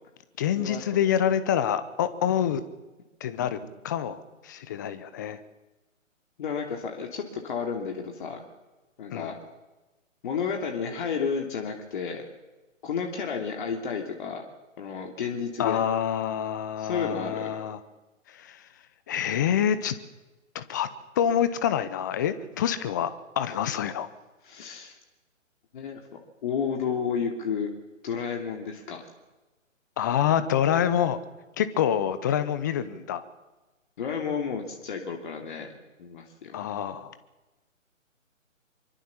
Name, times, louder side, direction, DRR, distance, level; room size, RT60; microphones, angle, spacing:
voice 1, 0.4-2.6 3.2-3.6 3.8-5.4 9.1-9.3 15.6-17.8 18.3-18.6 19.1-20.0 20.5-20.9 21.2-23.1 23.4-24.1 30.0-31.2 31.6-33.2 36.5-37.1, left 9 dB, 15° left, 13 dB, 0.7 m, -26 dB
voice 2, 6.4-8.4 9.0-9.3 10.2-12.3 12.8-14.4 14.8-15.8 16.8-17.5 24.4-25.0 25.7-26.0 26.4-27.7 28.0-29.0 34.0-35.7 36.0-36.5, left 6 dB, 40° left, 3 dB, 2.9 m, -31 dB
25.0 x 24.0 x 7.2 m, 1.1 s
figure-of-eight pair, 150°, 40 cm